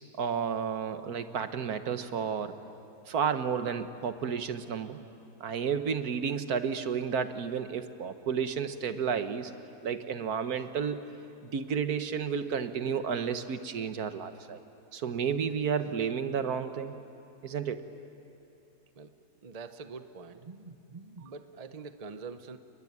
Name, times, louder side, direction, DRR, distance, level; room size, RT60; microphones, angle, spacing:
voice 1, 0.2-2.5 3.1-5.0 5.4-9.5 9.8-11.1 11.4-14.6 14.9-17.0 17.4-17.8, right 7 dB, 70° right, 10 dB, 1.6 m, -31 dB
voice 2, 19.4-22.6, right 4 dB, 30° right, 9 dB, 0.8 m, -45 dB
29.5 x 21.0 x 9.6 m, 2.9 s
omnidirectional pair, 1.7 m